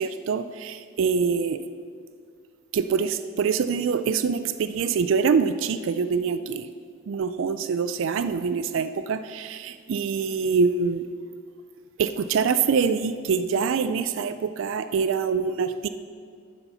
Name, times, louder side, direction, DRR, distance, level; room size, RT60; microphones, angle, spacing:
voice 1, 0.0-1.6 2.7-6.7 7.1-11.1 12.0-15.9, right 5 dB, 65° right, 12 dB, 0.4 m, -25 dB
9.5 x 7.0 x 5.7 m, 2.1 s
head